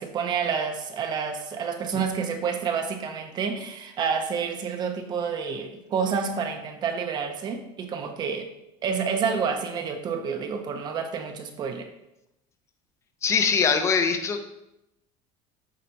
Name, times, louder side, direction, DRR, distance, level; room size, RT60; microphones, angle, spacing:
voice 1, 0.0-8.5 8.8-11.9, right 6 dB, 30° right, 6 dB, 0.6 m, -29 dB
voice 2, 13.2-14.5, left 6 dB, 20° left, 7 dB, 0.6 m, -22 dB
7.6 x 4.4 x 4.0 m, 0.88 s
cardioid pair, 160°, 13 cm